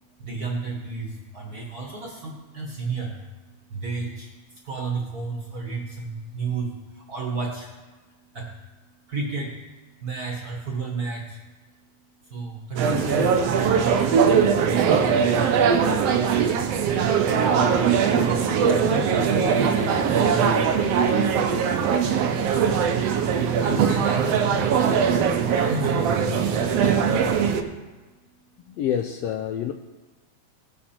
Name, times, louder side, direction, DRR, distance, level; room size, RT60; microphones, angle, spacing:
voice 1, 0.2-3.2 3.7-7.7 8.3-8.5 9.1-9.5 10.0-11.4 12.2-14.0 14.6-15.8 16.8-17.2 18.7-21.1 21.6-21.9 23.6-25.1 25.5-27.6, right 3 dB, 45° right, -1 dB, 1.4 m, -32 dB
sound 1, 12.8-27.6, right 7 dB, 70° right, 1.7 m, -21 dB
voice 2, 28.7-29.7, left 9 dB, 80° left, 6 dB, 1.4 m, -28 dB
18.5 x 6.2 x 4.3 m, 1.2 s
omnidirectional pair, 3.3 m